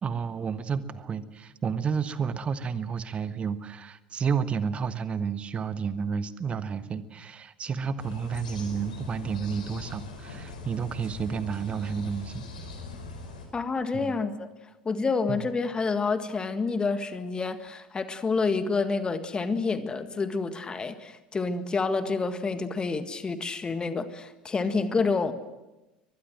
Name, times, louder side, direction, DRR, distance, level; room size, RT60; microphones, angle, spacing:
voice 1, 0.0-12.5 13.9-14.1 15.3-15.4, right 6 dB, 25° right, 13 dB, 1.3 m, -31 dB
sound 1, 8.0-13.5, left 4 dB, 70° left, 5.0 m, -41 dB
voice 2, 13.5-14.5 14.8-25.3, left 4 dB, 20° left, 10 dB, 1.7 m, -28 dB
23.5 x 20.5 x 7.7 m, 1.0 s
figure-of-eight pair, 70°, 4 cm